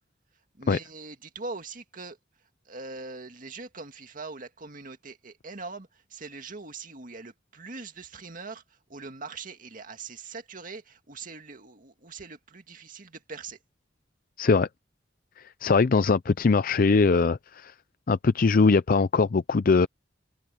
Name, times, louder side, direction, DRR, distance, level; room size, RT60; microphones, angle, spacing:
voice 1, 0.6-2.2 2.7-8.6 8.9-13.6, right 3 dB, 50° right, 2.1 m, -42 dB
voice 2, 14.4-14.7 15.4-17.7 18.1-19.9, left 4 dB, 50° left, 0.5 m, -21 dB
head